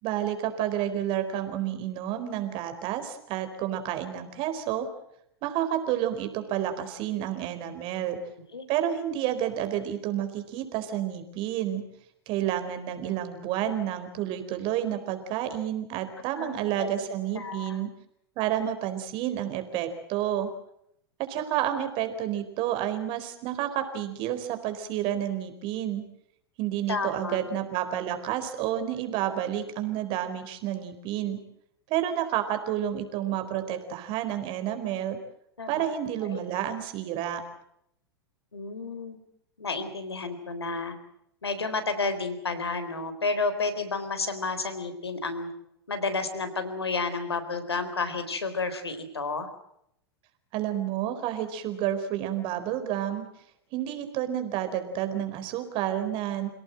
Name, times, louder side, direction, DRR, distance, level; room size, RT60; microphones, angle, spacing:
voice 1, 0.0-4.9 5.4-8.2 8.7-11.9 12.3-17.9 18.4-20.5 21.2-26.1 26.6-31.4 31.9-35.2 35.7-37.4 50.5-53.2 53.7-56.5, right 11 dB, 40° right, 9 dB, 4.4 m, -30 dB
voice 2, 16.4-17.8 26.9-27.4 35.6-35.8 36.2-36.4 38.5-39.2 39.6-41.0 41.4-45.5 45.9-49.5, left 3 dB, 80° left, 9 dB, 4.0 m, -31 dB
28.0 x 18.0 x 7.7 m, 0.75 s
figure-of-eight pair, 95°, 13 cm